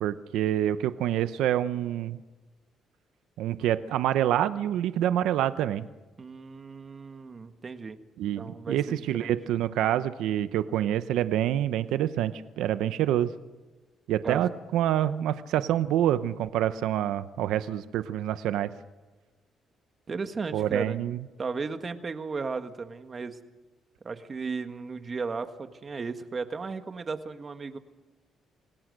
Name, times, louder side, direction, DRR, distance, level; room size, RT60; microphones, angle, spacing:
voice 1, 0.0-2.2 3.4-5.8 8.2-13.3 14.1-18.7 20.5-21.2, right 11 dB, 90° right, 12 dB, 0.8 m, -27 dB
voice 2, 6.2-8.0 8.4-9.4 14.2-14.5 20.1-21.0 21.4-23.4 24.0-27.8, right 4 dB, 35° right, 8 dB, 1.7 m, -35 dB
27.0 x 18.0 x 6.6 m, 1.2 s
cardioid pair, 90°, 0 cm